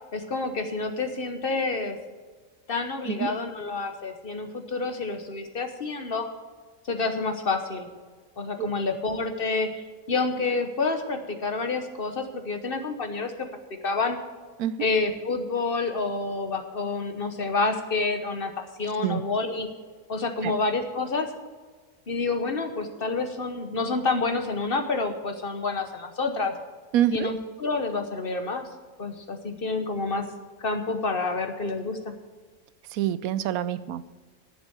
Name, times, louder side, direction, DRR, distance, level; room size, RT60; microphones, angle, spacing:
voice 1, 0.1-2.0 2.7-6.3 6.8-7.9 8.4-13.5 13.8-14.2 14.8-19.7 20.1-21.3 22.1-26.5 27.1-28.7 29.0-30.3 30.6-32.1, left 3 dB, 45° left, 6 dB, 1.1 m, -28 dB
voice 2, 26.9-27.3 32.9-34.1, right 11 dB, 85° right, 15 dB, 1.0 m, -26 dB
10.0 x 7.4 x 7.9 m, 1.4 s
omnidirectional pair, 1.5 m